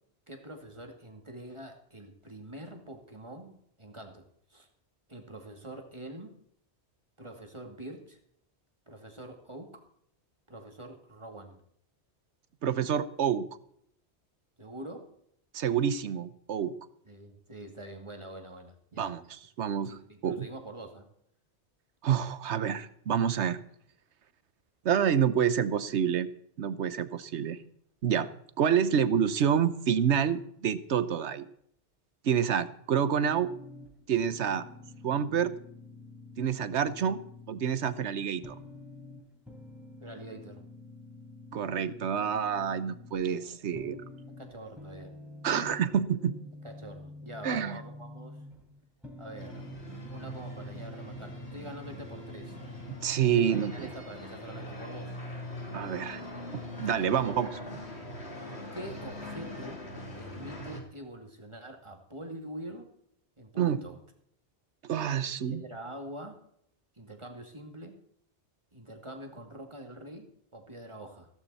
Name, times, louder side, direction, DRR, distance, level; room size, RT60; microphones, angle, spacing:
voice 1, 0.3-4.2 4.5-4.7 5.1-6.3 7.2-8.2 8.9-9.8 10.5-11.6 14.6-15.1 17.1-19.2 19.9-21.1 40.0-40.6 43.0-43.6 44.4-45.1 46.6-48.4 49.2-49.7 50.1-52.6 53.2-55.1 56.8-57.1 58.7-59.8 60.2-62.9 63.4-64.0 65.4-66.4 67.0-67.9 68.7-71.3, right 1 dB, 25° right, 3 dB, 2.3 m, -45 dB
voice 2, 12.6-13.4 15.5-16.7 19.0-19.2 19.6-20.5 22.0-23.6 24.8-26.3 26.6-27.6 28.0-28.3 28.6-31.5 32.2-33.5 34.1-34.6 35.0-35.5 36.4-37.2 37.5-38.5 41.5-44.0 45.4-46.3 47.4-47.8 52.9-53.9 55.7-56.2 56.5-57.5 63.6-63.8 64.8-65.6, right 8 dB, 85° right, 15 dB, 1.2 m, -28 dB
sound 1, 33.2-53.0, left 2 dB, ahead, 4.4 m, -48 dB
sound 2, 49.4-60.8, equal, 75° left, 3.4 m, -42 dB
16.0 x 14.0 x 4.2 m, 0.69 s
omnidirectional pair, 1.1 m